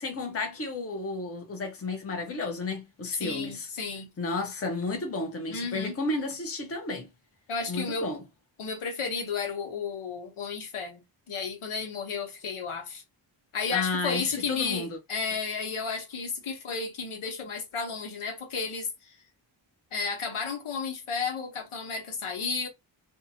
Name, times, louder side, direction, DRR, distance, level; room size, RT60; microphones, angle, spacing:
voice 1, 0.0-3.7 4.2-7.1 7.7-8.2 13.7-15.0, left 3 dB, 30° left, 0.7 m, -32 dB
voice 2, 3.2-4.1 5.5-6.0 7.5-8.2 8.6-11.0 11.3-13.0 13.5-19.2 19.9-22.7, left 5 dB, 85° left, 1.1 m, -33 dB
2.7 x 2.3 x 2.7 m
wide cardioid pair, 150°, 49 cm